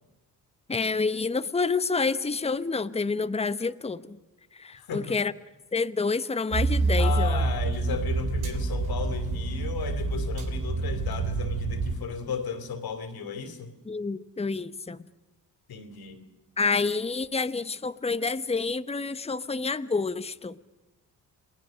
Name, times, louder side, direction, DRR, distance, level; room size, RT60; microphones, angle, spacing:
voice 1, 0.7-4.2 4.5-5.3 5.7-7.4 13.9-15.1 16.6-20.6, left 4 dB, 15° left, 13 dB, 0.9 m, -28 dB
voice 2, 4.8-5.2 7.0-13.8 15.7-16.2, left 6 dB, 70° left, 9 dB, 3.1 m, -35 dB
sound 1, 6.5-12.0, right 3 dB, 70° right, 3.5 m, -27 dB
28.0 x 19.0 x 6.4 m, 1.1 s
cardioid pair, 70°, 38 cm